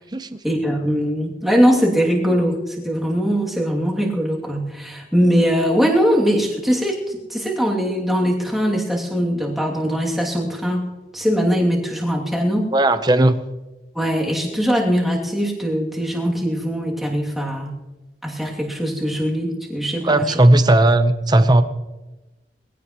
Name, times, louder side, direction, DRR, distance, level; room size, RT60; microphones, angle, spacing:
voice 1, 0.4-10.8 11.1-12.7 13.9-17.8 18.2-20.3, equal, ahead, -3 dB, 2.7 m, -21 dB
voice 2, 12.7-13.4 20.0-21.6, right 1 dB, 25° right, 10 dB, 0.8 m, -15 dB
22.0 x 16.0 x 3.1 m, 1.1 s
head